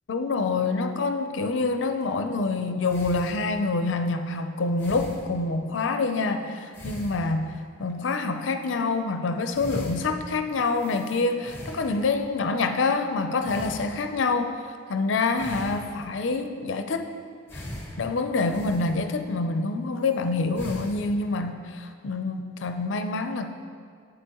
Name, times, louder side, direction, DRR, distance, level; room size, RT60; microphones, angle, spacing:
voice 1, 0.1-17.1 17.5-17.7 18.0-23.5, left 3 dB, 65° left, 7 dB, 0.5 m, -26 dB
sound 1, 2.9-3.8 4.8-5.6 6.6-7.9 8.5-8.7 9.2-9.3 9.5-12.4 13.4-14.4 15.4-16.3 17.5-19.4 19.9-20.2 20.5-21.1, left 1 dB, 10° left, 1.0 m, -40 dB
8.1 x 8.0 x 3.0 m, 2.2 s
head